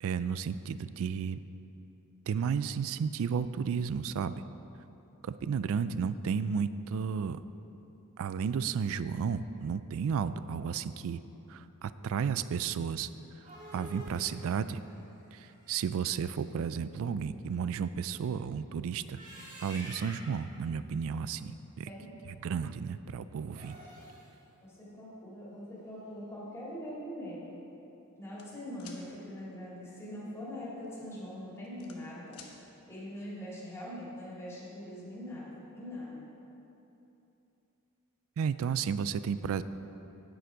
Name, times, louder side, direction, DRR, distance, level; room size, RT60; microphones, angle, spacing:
voice 1, 0.0-1.4 2.3-4.3 5.2-7.4 8.2-11.2 11.5-13.1 13.7-14.8 15.3-19.2 19.6-21.9 22.3-23.8 38.4-39.6, right 6 dB, 65° right, 14 dB, 0.3 m, -33 dB
sound 1, 13.2-16.2 19.0-20.5 23.4-24.3, equal, 35° right, 2.2 m, -49 dB
voice 2, 24.6-27.6 28.2-32.4 32.9-36.2, left 1 dB, 15° left, -8 dB, 2.5 m, -42 dB
sound 2, 28.4-29.0 30.7-30.9 31.3-32.5, left 6 dB, 80° left, 1.1 m, -52 dB
9.5 x 7.9 x 5.0 m, 2.9 s
head